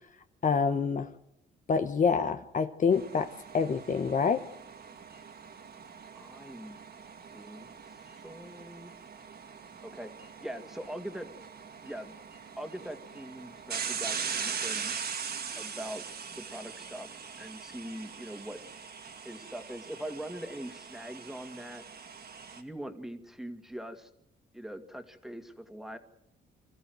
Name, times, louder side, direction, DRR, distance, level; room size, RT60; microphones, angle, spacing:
voice 1, 0.4-1.1 1.7-4.4, left 5 dB, 40° left, 9 dB, 1.0 m, -27 dB
sound 1, 2.9-22.6, right 6 dB, 55° right, 2.3 m, -41 dB
voice 2, 6.1-6.8 7.3-7.9 8.2-8.9 9.8-10.1 10.4-11.3 11.8-12.2 12.6-14.9 15.6-16.0 16.3-18.6 19.2-21.8 22.5-24.1 24.5-26.0, right 1 dB, ahead, 7 dB, 2.2 m, -42 dB
26.5 x 14.5 x 7.9 m, 0.82 s
cardioid pair, 90°, 20 cm